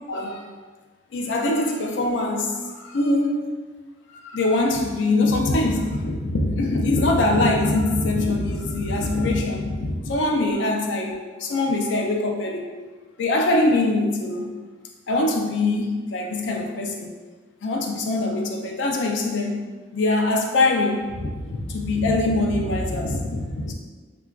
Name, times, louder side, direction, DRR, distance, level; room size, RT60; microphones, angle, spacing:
voice 1, 0.1-0.4 1.1-3.4 4.1-12.6 13.2-14.5 15.1-17.1 17.6-19.6 19.9-23.7, left 2 dB, 75° left, 2 dB, 0.4 m, -23 dB
3.8 x 2.3 x 2.3 m, 1.4 s
head